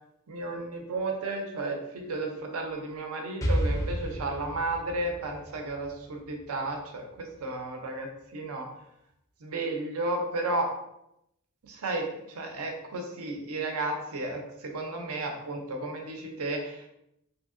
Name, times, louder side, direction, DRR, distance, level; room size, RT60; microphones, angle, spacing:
voice 1, 0.3-8.1 8.3-8.7 9.4-10.7 11.7-12.1 12.3-16.9, right 2 dB, 80° right, 3 dB, 0.6 m, -33 dB
Explosion, 3.4-7.2, equal, 15° left, 0.4 m, -32 dB
2.7 x 2.7 x 2.5 m, 0.82 s
head